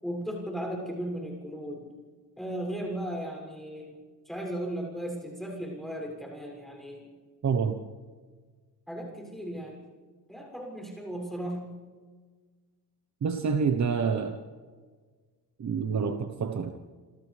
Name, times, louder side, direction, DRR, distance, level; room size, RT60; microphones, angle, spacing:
voice 1, 0.0-1.9 2.4-4.0 4.3-7.1 8.9-9.8 10.3-11.7, right 1 dB, ahead, -1 dB, 7.0 m, -36 dB
voice 2, 7.4-7.8 13.2-14.4 15.6-16.7, right 6 dB, 45° right, 6 dB, 1.2 m, -27 dB
28.0 x 27.0 x 3.5 m, 1.5 s
wide cardioid pair, 170°, 39 cm